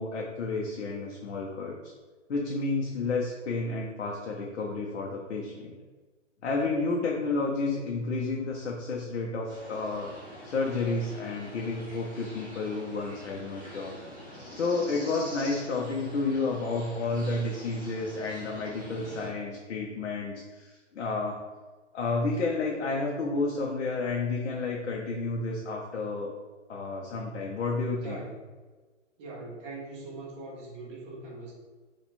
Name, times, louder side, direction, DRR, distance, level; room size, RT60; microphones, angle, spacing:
voice 1, 0.0-1.9 2.3-5.7 6.4-10.2 10.4-21.4 21.9-26.3 26.7-28.2, left 3 dB, 65° left, -2 dB, 0.8 m, -31 dB
sound 1, 9.5-19.3, equal, 5° left, 0.5 m, -46 dB
voice 2, 28.0-28.4 29.2-31.5, right 2 dB, 25° right, -4 dB, 0.9 m, -41 dB
4.4 x 2.5 x 4.3 m, 1.3 s
hypercardioid pair, 155°, 37 cm